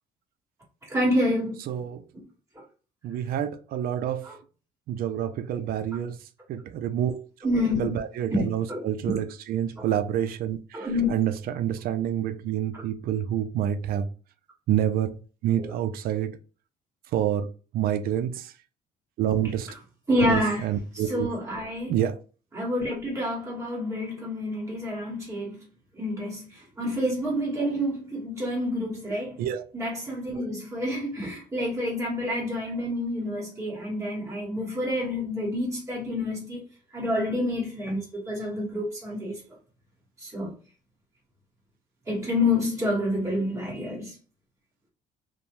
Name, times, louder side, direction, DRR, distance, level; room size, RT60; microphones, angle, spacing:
voice 1, 0.9-1.6 4.2-4.4 7.4-8.0 8.3-8.4 8.7-9.2 9.8-9.9 10.7-11.2 15.6-15.7 20.1-20.7 20.9-22.0 22.5-25.6 25.9-29.4 29.7-36.6 36.9-38.0 38.3-39.3 40.2-40.5 42.1-44.1, left 1 dB, 15° right, 1.5 m, -28 dB
voice 2, 1.7-2.0 3.0-4.2 4.9-6.2 6.5-7.5 7.8-14.1 14.7-15.1 15.4-16.4 17.1-18.5 19.2-19.7 20.2-21.3 21.9-22.2 29.4-29.6, right 10 dB, 60° right, 0.4 m, -28 dB
2.6 x 2.1 x 3.0 m
cardioid pair, 110°, 17 cm